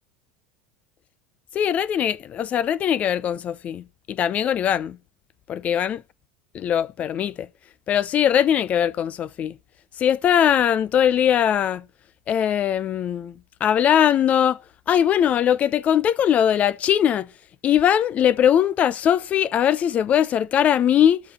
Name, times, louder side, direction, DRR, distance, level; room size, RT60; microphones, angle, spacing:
voice 1, 1.5-5.0 5.5-6.0 6.5-7.5 7.9-9.5 10.0-11.8 12.3-14.6 14.9-17.3 17.6-21.2, left 9 dB, 35° left, 0.5 m, -20 dB
12.5 x 5.0 x 6.6 m
figure-of-eight pair, 75°, 4 cm